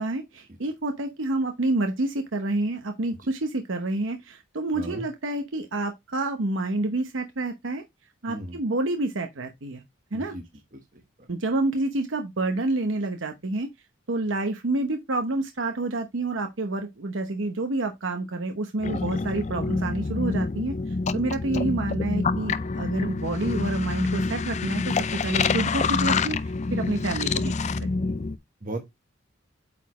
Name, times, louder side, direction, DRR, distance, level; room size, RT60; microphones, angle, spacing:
voice 1, 0.0-7.8 8.2-9.8 10.1-10.3 11.3-13.7 14.1-28.1, right 2 dB, 75° right, 0.9 m, -28 dB
voice 2, 4.7-5.1 8.3-8.6 10.1-10.4 10.7-11.3 18.9-19.0 28.6-28.9, right 1 dB, 40° right, 1.1 m, -37 dB
sound 1, 18.8-28.4, left 4 dB, 35° left, 0.4 m, -27 dB
8.8 x 4.3 x 3.0 m
head